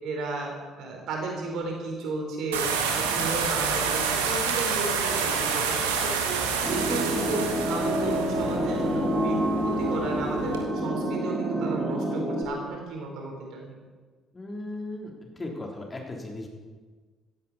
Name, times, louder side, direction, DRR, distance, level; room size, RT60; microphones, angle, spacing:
voice 1, 0.0-0.5 0.8-6.4 6.7-13.7, right 3 dB, 60° right, 1 dB, 4.1 m, -33 dB
sound 1, 2.5-10.6, right 5 dB, 75° right, 1.7 m, -28 dB
sound 2, 6.6-12.4, right 1 dB, 20° right, 4.8 m, -28 dB
voice 2, 14.3-15.1 15.4-16.5, left 2 dB, 25° left, 1 dB, 3.6 m, -37 dB
16.0 x 15.5 x 4.2 m, 1.4 s
figure-of-eight pair, 50°, 0 cm